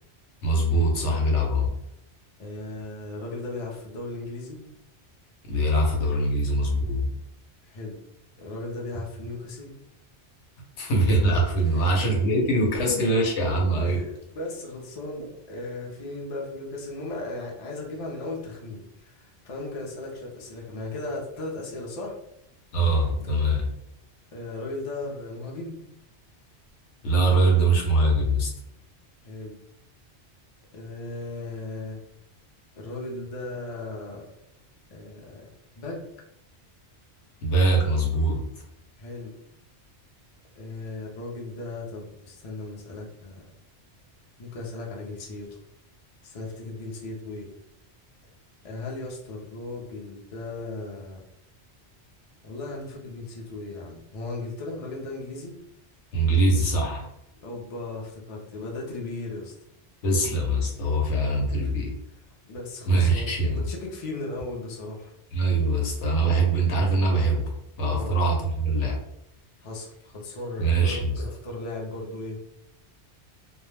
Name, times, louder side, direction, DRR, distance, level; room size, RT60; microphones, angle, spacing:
voice 1, 0.4-1.7 5.5-7.1 10.8-14.0 22.7-23.7 27.0-28.5 37.4-38.4 56.1-57.1 60.0-61.9 62.9-63.6 65.3-67.5 67.8-69.0 70.6-71.2, right 2 dB, 80° left, 0 dB, 1.0 m, -23 dB
voice 2, 2.4-4.6 7.6-8.0 8.4-9.7 11.6-12.3 13.8-22.2 24.3-25.8 29.2-29.6 30.7-32.0 32.8-34.3 34.9-36.0 39.0-39.3 40.5-43.4 44.4-45.5 46.2-47.5 48.6-51.2 52.4-55.6 57.4-59.5 61.6-61.7 62.5-65.1 67.8-68.2 69.6-72.4, left 2 dB, 45° left, -2 dB, 0.5 m, -36 dB
2.2 x 2.1 x 3.2 m, 0.79 s
omnidirectional pair, 1.2 m